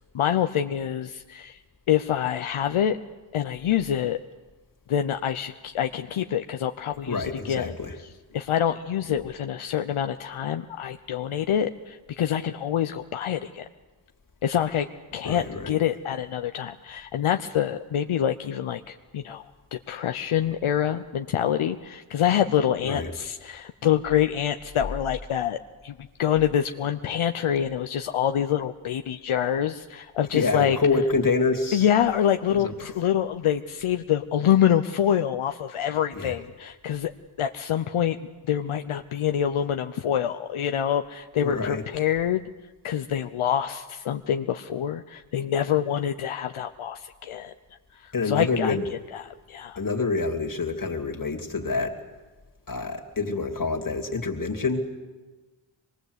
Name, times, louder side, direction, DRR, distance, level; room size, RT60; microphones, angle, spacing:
voice 1, 0.1-1.6 1.9-3.0 3.3-4.2 4.9-7.7 8.3-13.7 14.4-14.9 15.1-19.4 19.7-30.8 31.7-37.1 37.4-38.2 38.5-42.4 42.8-47.5 47.9-48.8 49.1-49.8, left 10 dB, 80° left, 7 dB, 0.8 m, -26 dB
voice 2, 7.1-7.9 15.2-15.7 22.8-23.1 30.3-31.9 32.5-32.9 36.1-36.3 41.4-41.8 48.1-48.9 49.8-52.0 52.7-54.9, left 4 dB, 40° left, 5 dB, 2.7 m, -27 dB
23.5 x 21.0 x 8.1 m, 1.2 s
cardioid pair, 80°, 49 cm